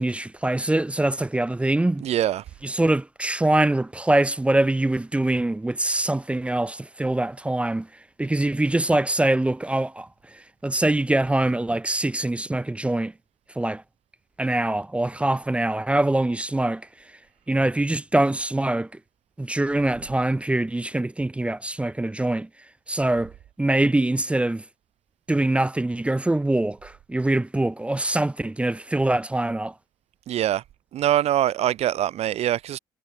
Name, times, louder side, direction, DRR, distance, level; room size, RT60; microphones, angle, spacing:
voice 1, 0.0-2.1 2.6-7.9 8.2-13.1 13.6-13.8 14.4-16.9 17.5-18.9 19.4-22.5 22.9-23.3 23.6-24.6 25.3-29.7, right 1 dB, 10° right, 0.5 m, -23 dB
voice 2, 2.0-2.4 30.3-30.6 30.9-32.8, right 12 dB, 65° right, 2.6 m, -23 dB
supercardioid pair, 70°, 12 cm